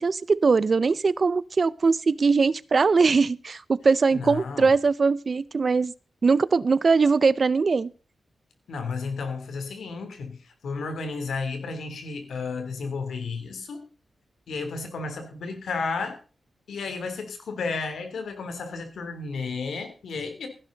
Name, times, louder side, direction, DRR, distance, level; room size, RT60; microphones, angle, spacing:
voice 1, 0.0-5.9 6.2-7.9, right 4 dB, 45° right, 0.5 m, -21 dB
voice 2, 4.1-4.7 8.7-13.8 14.5-16.1 16.7-20.5, left 4 dB, 90° left, 3.2 m, -32 dB
15.5 x 11.0 x 3.9 m
wide cardioid pair, 120°, 0 cm